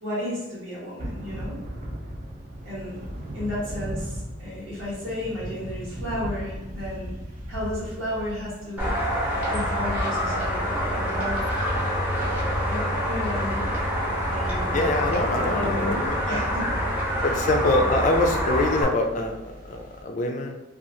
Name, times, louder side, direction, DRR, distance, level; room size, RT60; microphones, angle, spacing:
voice 1, 0.0-1.6 2.6-3.0 3.3-7.1 7.5-8.9 9.5-11.4 12.7-13.7 14.3-14.9 15.2-16.8 17.2-17.4, left 1 dB, 90° right, -8 dB, 1.2 m, -33 dB
Thunder / Rain, 1.0-20.0, equal, 45° right, 0.5 m, -39 dB
sound 1, 8.8-18.8, equal, 10° right, 0.7 m, -26 dB
voice 2, 14.7-16.4 17.2-20.6, left 2 dB, 40° left, 4 dB, 0.3 m, -25 dB
2.7 x 2.3 x 2.5 m, 1.0 s
head